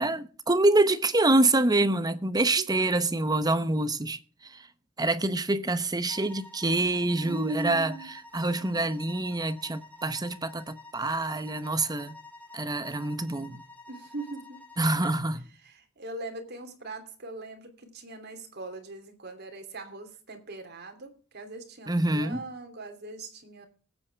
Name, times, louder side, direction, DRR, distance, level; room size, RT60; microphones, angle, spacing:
voice 1, 0.0-4.7 5.0-7.9 8.3-12.1 12.5-13.6 14.8-15.5 21.9-22.4, right 2 dB, 20° right, 0.9 m, -26 dB
sound 1, 6.1-15.2, left 2 dB, 10° left, 2.6 m, -50 dB
voice 2, 7.2-8.1 13.9-14.6 15.6-23.7, right 2 dB, 55° right, 3.0 m, -40 dB
19.5 x 8.9 x 3.4 m
head